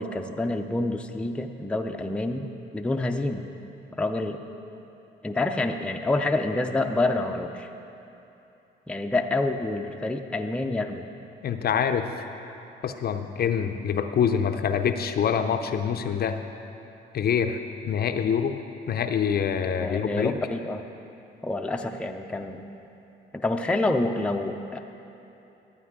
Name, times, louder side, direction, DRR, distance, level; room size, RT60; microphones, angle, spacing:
voice 1, 0.0-3.5 3.9-4.4 5.2-7.7 8.9-11.1 19.8-20.8 21.4-22.7 23.3-24.8, left 2 dB, 5° left, 4 dB, 0.5 m, -27 dB
voice 2, 11.4-12.1 12.8-16.4 17.1-17.6 17.8-18.6 18.9-20.4, left 7 dB, 50° left, 7 dB, 0.5 m, -25 dB
12.0 x 9.0 x 3.7 m, 2.9 s
cardioid pair, 90°, 20 cm